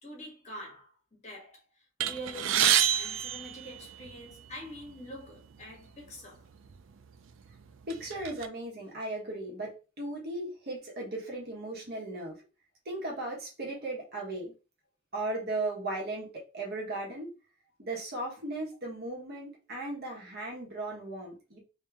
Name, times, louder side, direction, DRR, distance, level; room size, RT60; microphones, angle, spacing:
voice 1, 0.0-6.5, equal, 35° left, 1.4 m, -46 dB
sound 1, 2.0-4.3 5.2-5.3 5.6-5.8 6.6-6.8 7.3-8.5, right 10 dB, 75° right, 0.4 m, -28 dB
voice 2, 7.9-12.4 12.8-14.5 15.1-17.3 17.8-21.6, right 2 dB, 50° right, 1.4 m, -37 dB
3.2 x 3.0 x 3.5 m
head